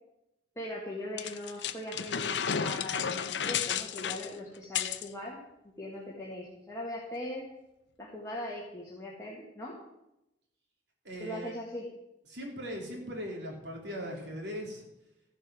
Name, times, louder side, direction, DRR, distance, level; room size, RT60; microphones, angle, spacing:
voice 1, 0.6-5.4 5.8-7.4 8.0-9.8 11.2-11.9, left 1 dB, 20° left, -5 dB, 2.0 m, -40 dB
sound 1, 1.2-5.1, left 7 dB, 80° left, 0.7 m, -32 dB
voice 2, 11.0-11.5 12.3-14.9, equal, 75° right, 0 dB, 3.3 m, -39 dB
14.5 x 7.4 x 6.2 m, 0.88 s
head